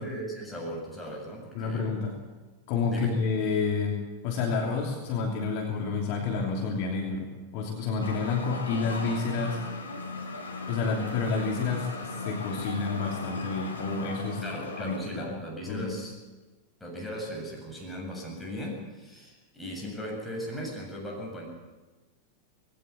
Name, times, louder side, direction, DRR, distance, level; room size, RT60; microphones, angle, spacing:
voice 1, 0.0-1.9 2.9-3.1 14.4-16.2 16.8-21.5, equal, 5° left, -2 dB, 7.8 m, -37 dB
voice 2, 1.5-2.1 2.7-9.6 10.7-14.4 14.8-15.4 15.7-16.0, left 4 dB, 45° left, 1 dB, 3.0 m, -29 dB
sound 1, 8.0-15.0, left 3 dB, 75° left, 2.5 m, -37 dB
20.5 x 17.0 x 8.4 m, 1.2 s
figure-of-eight pair, 90°, 0 cm